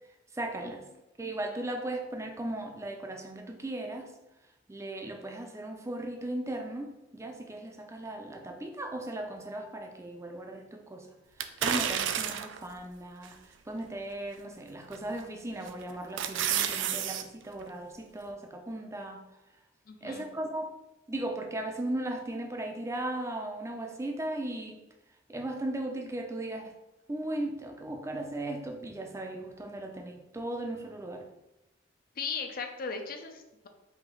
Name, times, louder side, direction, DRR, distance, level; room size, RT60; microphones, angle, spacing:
voice 1, 0.3-0.8 1.2-4.1 4.7-11.1 11.6-13.4 13.7-19.3 20.0-20.7 21.1-24.8 25.3-26.7 27.1-31.3, right 1 dB, 15° right, 0.5 m, -37 dB
sound 1, 11.4-12.6 13.2-13.3 14.9-15.3 15.7-17.2 17.6-17.7, right 9 dB, 75° right, 0.4 m, -30 dB
voice 2, 19.9-20.3 32.2-33.7, left 5 dB, 50° left, 0.6 m, -37 dB
4.9 x 2.7 x 3.8 m
head